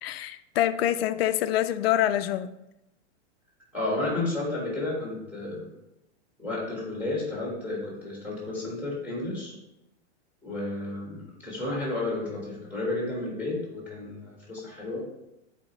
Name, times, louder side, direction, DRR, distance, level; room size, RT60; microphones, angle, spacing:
voice 1, 0.0-2.5, left 12 dB, 60° left, 11 dB, 0.4 m, -25 dB
voice 2, 3.7-5.7 6.4-9.5 10.4-15.0, left 2 dB, 5° right, -4 dB, 1.5 m, -32 dB
7.9 x 4.3 x 3.1 m, 0.89 s
supercardioid pair, 175°, 35 cm